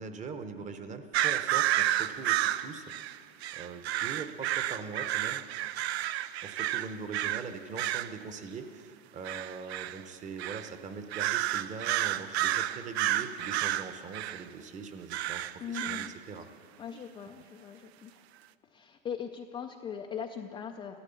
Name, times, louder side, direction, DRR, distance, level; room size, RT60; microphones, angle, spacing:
voice 1, 0.0-3.1 3.5-5.4 6.4-16.5, right 5 dB, 25° right, 9 dB, 0.9 m, -42 dB
sound 1, 1.1-7.5 7.8-8.2 9.3-10.0 10.4-10.7 11.1-14.4 15.1-16.1, right 13 dB, 85° right, 0.5 m, -31 dB
voice 2, 15.6-16.1 16.8-18.2 18.6-21.0, left 7 dB, 15° left, 3 dB, 0.3 m, -40 dB
14.0 x 12.5 x 7.0 m, 2.5 s
supercardioid pair, 135°, 31 cm